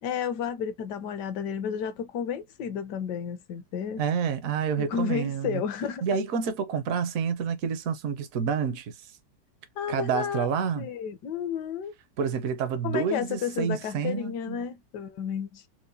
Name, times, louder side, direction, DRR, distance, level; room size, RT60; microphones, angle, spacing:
voice 1, 0.0-4.0 4.8-6.0 9.8-11.9 12.8-15.6, left 7 dB, 70° left, 1.2 m, -32 dB
voice 2, 4.0-5.6 6.0-8.9 9.9-10.9 12.2-14.6, right 6 dB, 60° right, 1.0 m, -28 dB
4.7 x 2.2 x 2.6 m
omnidirectional pair, 1.9 m